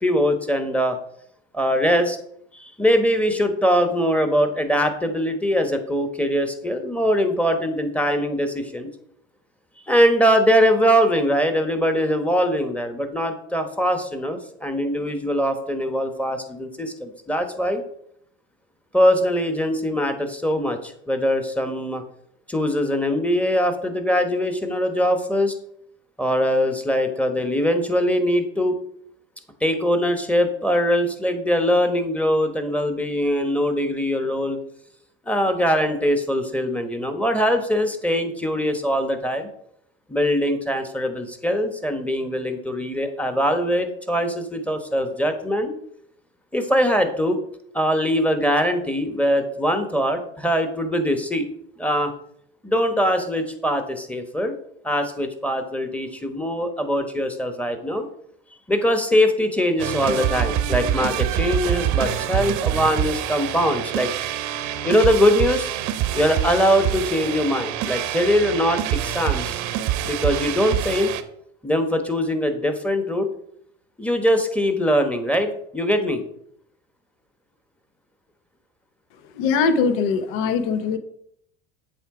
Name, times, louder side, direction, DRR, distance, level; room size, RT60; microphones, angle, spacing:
voice 1, 0.0-1.0 1.5-2.2 2.5-8.9 9.9-17.8 18.9-22.0 22.5-25.5 26.2-28.8 29.6-34.6 35.3-39.5 40.1-45.7 46.5-47.4 47.7-51.5 51.8-52.1 52.6-54.5 54.8-58.1 58.7-64.1 64.8-65.7 66.1-69.6 70.0-71.1 71.6-73.3 74.0-76.2, equal, 5° left, 7 dB, 1.0 m, -22 dB
sound 1, 59.8-71.2, right 11 dB, 65° right, 0.8 m, -25 dB
voice 2, 79.3-81.0, left 5 dB, 70° left, 11 dB, 0.9 m, -21 dB
8.0 x 3.5 x 4.8 m, 0.70 s
hypercardioid pair, 80°, 33 cm